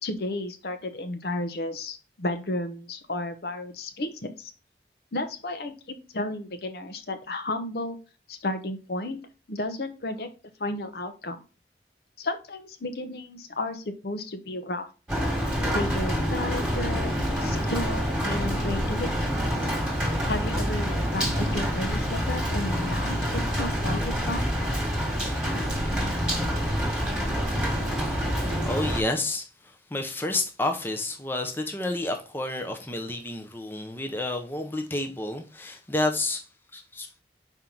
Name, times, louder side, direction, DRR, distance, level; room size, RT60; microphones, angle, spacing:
voice 1, 0.0-4.5 5.1-8.0 8.3-9.2 9.5-10.3 10.6-11.4 12.2-14.9 15.7-19.3 20.2-24.4, left 2 dB, 65° left, 0.8 m, -33 dB
Rain, 15.1-29.0, equal, 5° right, 1.7 m, -27 dB
voice 2, 28.6-36.4 36.7-37.2, left 2 dB, 10° left, 0.7 m, -30 dB
5.6 x 4.5 x 3.7 m
head